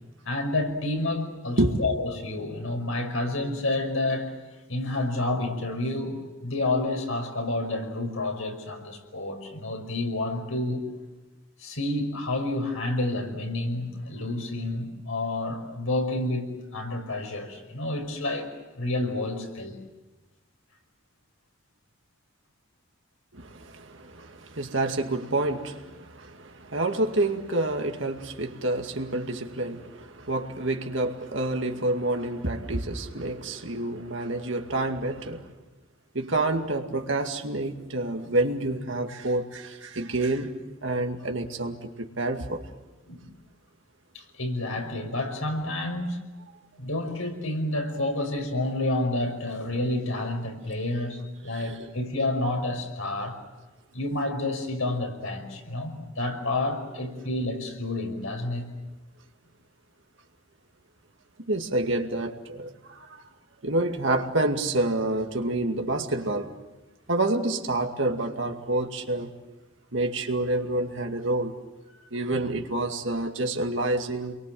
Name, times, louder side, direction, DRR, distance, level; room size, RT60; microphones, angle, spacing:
voice 1, 0.3-4.3 4.7-10.8 11.6-18.5 18.8-19.8 43.1-43.3 44.1-46.2 46.8-53.4 53.9-58.7 72.3-72.4, left 2 dB, 90° left, 5.6 m, -29 dB
voice 2, 23.3-35.5 36.1-40.5 40.8-41.9 42.2-42.6 51.5-51.8 61.5-63.2 63.6-66.5 67.1-69.3 69.9-71.6 72.1-74.3, right 2 dB, 65° right, 2.3 m, -28 dB
29.0 x 23.0 x 7.8 m
head